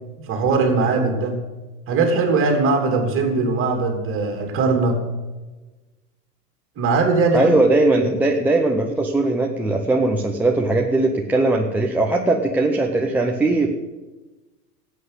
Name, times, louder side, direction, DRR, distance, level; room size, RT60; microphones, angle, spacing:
voice 1, 0.3-1.4 1.9-5.0 6.8-7.5 7.9-8.1, right 3 dB, 25° right, 3 dB, 3.0 m, -20 dB
voice 2, 7.3-13.7, right 2 dB, 5° right, -1 dB, 0.6 m, -19 dB
13.0 x 8.4 x 8.2 m, 1.2 s
hypercardioid pair, 135°, 48 cm